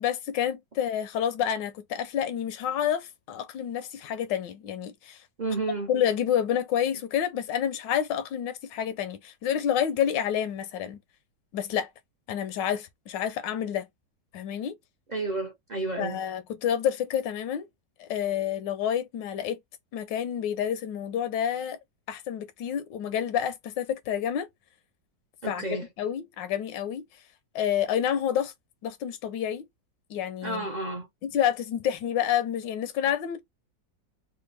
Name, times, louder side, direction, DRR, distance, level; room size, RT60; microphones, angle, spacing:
voice 1, 0.0-5.2 5.9-11.0 11.5-11.9 12.3-13.9 14.3-14.8 16.0-17.7 18.0-19.6 19.9-21.8 22.1-24.5 25.5-25.6 26.0-27.0 27.5-28.5 28.8-29.6 30.1-30.7 31.2-33.4, left 9 dB, 85° left, 1.3 m, -29 dB
voice 2, 5.4-5.9 15.1-16.2 25.4-25.9 30.4-31.1, right 2 dB, 65° right, 0.4 m, -31 dB
4.1 x 2.2 x 3.3 m
omnidirectional pair, 1.9 m